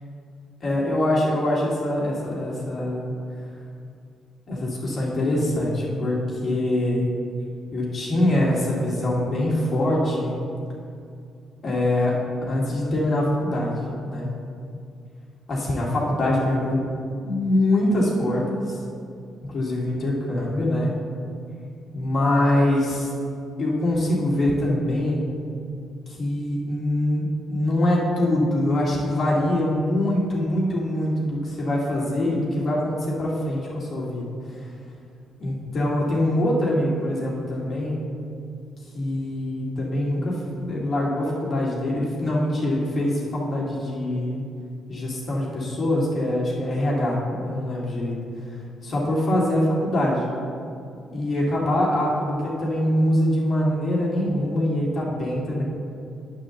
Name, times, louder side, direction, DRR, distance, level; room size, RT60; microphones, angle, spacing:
voice 1, 0.6-3.1 4.5-7.1 7.7-10.4 11.6-12.2 12.5-14.3 15.5-16.8 17.2-18.8 19.4-20.9 21.9-23.1 23.6-25.3 26.1-34.7 35.4-38.0 38.9-44.4 44.9-48.2 48.5-48.6 48.8-50.2 51.1-55.6, left 1 dB, 45° left, -5 dB, 2.0 m, -24 dB
8.9 x 3.8 x 6.8 m, 2.4 s
cardioid pair, 90°, 0 cm